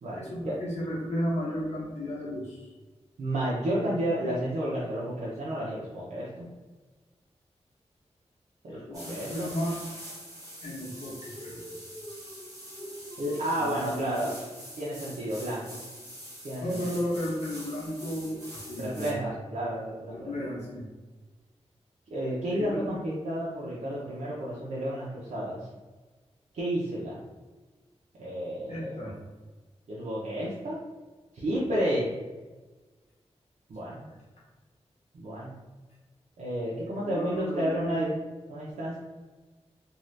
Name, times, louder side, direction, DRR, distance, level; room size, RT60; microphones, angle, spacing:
voice 1, 0.1-2.7 8.7-9.8 10.6-11.7 12.8-12.9 13.6-14.3 16.6-19.3 20.1-20.9 22.5-23.0 28.7-29.1 37.0-38.0, equal, 75° left, -5 dB, 0.9 m, -34 dB
voice 2, 3.2-6.5 8.6-9.5 12.9-14.4 14.8-15.8 16.4-17.0 18.8-20.3 22.1-25.6 26.5-27.2 28.2-29.1 29.9-30.8 31.3-32.1 33.7-34.1 35.1-35.6 36.4-38.2 38.5-39.0, right 1 dB, 85° right, -7 dB, 0.6 m, -31 dB
sound 1, 8.9-19.1, equal, 30° right, 0.9 m, -44 dB
2.7 x 2.3 x 3.2 m, 1.3 s
wide cardioid pair, 155°, 11 cm